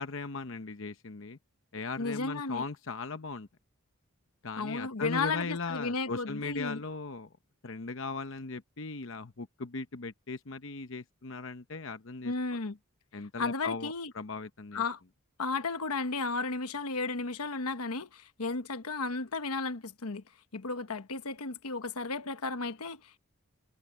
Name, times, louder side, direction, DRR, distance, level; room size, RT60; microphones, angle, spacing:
voice 1, 0.0-1.4 1.7-3.5 4.4-7.3 7.6-12.6 13.1-14.8, left 4 dB, 60° left, 0.9 m, -38 dB
voice 2, 2.0-2.6 4.6-6.8 12.2-12.8 13.4-14.1 14.7-15.0 15.4-20.2 20.5-23.2, left 3 dB, 90° left, 1.2 m, -34 dB
head